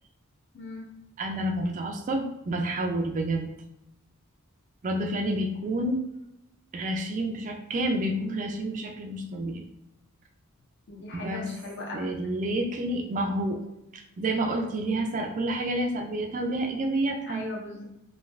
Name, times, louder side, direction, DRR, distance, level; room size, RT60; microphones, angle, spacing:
voice 1, 0.5-0.9 10.9-12.1 17.3-17.8, left 1 dB, 55° left, -1 dB, 0.8 m, -38 dB
voice 2, 1.2-3.5 4.8-6.0 6.7-9.6 11.1-11.6 11.9-13.6 13.9-17.4, right 1 dB, 35° right, 4 dB, 0.3 m, -29 dB
3.1 x 2.8 x 2.3 m, 0.86 s
head